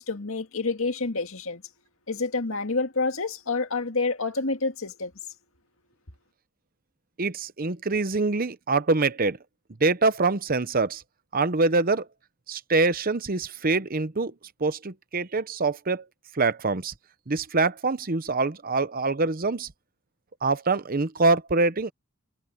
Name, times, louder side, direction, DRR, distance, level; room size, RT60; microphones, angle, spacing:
voice 1, 0.0-1.6 2.1-5.1, left 3 dB, 65° left, 2.1 m, -28 dB
voice 2, 7.2-9.4 9.8-11.0 11.3-12.1 12.5-14.3 14.6-16.0 16.3-16.9 17.3-19.7 20.4-21.9, right 3 dB, 40° right, 0.9 m, -24 dB
head